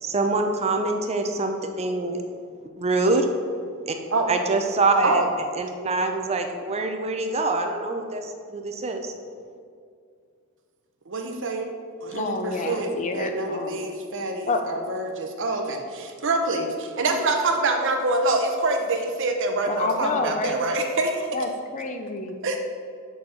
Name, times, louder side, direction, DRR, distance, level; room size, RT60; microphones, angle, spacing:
voice 1, 0.0-2.2 2.8-3.3 3.8-4.0 4.3-5.2 5.5-9.1, right 3 dB, 30° right, 5 dB, 0.5 m, -25 dB
voice 2, 11.1-11.7 12.0-12.9 13.1-21.3 22.4-22.6, right 2 dB, 60° right, 4 dB, 0.8 m, -25 dB
voice 3, 12.1-13.9 14.4-14.6 19.7-20.7 21.3-22.3, left 3 dB, 35° left, 6 dB, 0.5 m, -28 dB
6.9 x 4.4 x 6.3 m, 2.2 s
head